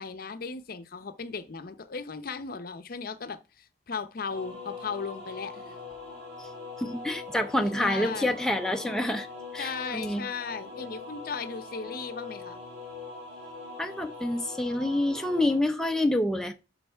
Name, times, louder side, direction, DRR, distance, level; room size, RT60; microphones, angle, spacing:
voice 1, 0.0-5.7 7.7-8.4 9.6-12.6, left 5 dB, 55° left, 0.6 m, -36 dB
sound 1, 4.3-15.6, left 3 dB, 65° right, 3.3 m, -42 dB
voice 2, 6.8-9.3 9.5-10.3 13.8-16.5, left 1 dB, 5° left, 0.5 m, -27 dB
11.5 x 3.9 x 3.4 m
head